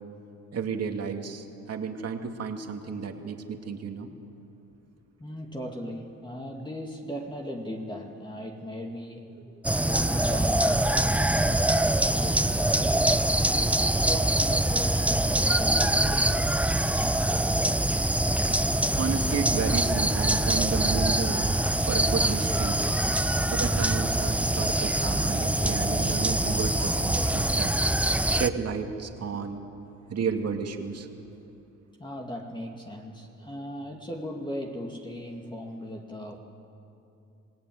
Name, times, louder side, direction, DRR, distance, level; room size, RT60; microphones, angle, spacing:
voice 1, 0.5-4.1 19.0-21.5 21.9-22.8 23.5-27.7 28.3-29.6 30.1-31.1, right 6 dB, 55° right, 4 dB, 2.4 m, -32 dB
voice 2, 5.2-9.4 9.8-13.0 13.8-17.2 29.2-29.5 29.8-30.2 31.2-31.3 32.0-36.4, equal, 15° left, 1 dB, 2.3 m, -38 dB
sound 1, 9.6-28.5, right 1 dB, 5° right, 0.7 m, -24 dB
26.0 x 18.5 x 9.3 m, 2.8 s
cardioid pair, 90°, 30 cm